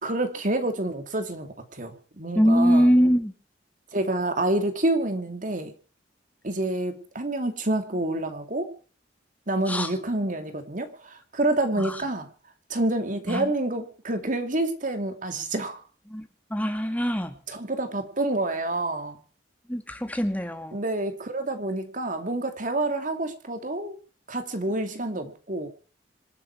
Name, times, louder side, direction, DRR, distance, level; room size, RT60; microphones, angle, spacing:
voice 1, 0.0-2.9 3.9-5.7 6.4-8.7 9.5-12.3 12.7-15.8 17.5-19.2 20.7-24.0 24.3-25.7, right 2 dB, 50° right, 7 dB, 2.6 m, -28 dB
voice 2, 2.4-3.3 9.7-9.9 13.3-13.5 16.1-17.4 19.7-20.8, equal, 10° left, 7 dB, 2.1 m, -22 dB
27.0 x 9.6 x 4.7 m, 0.38 s
head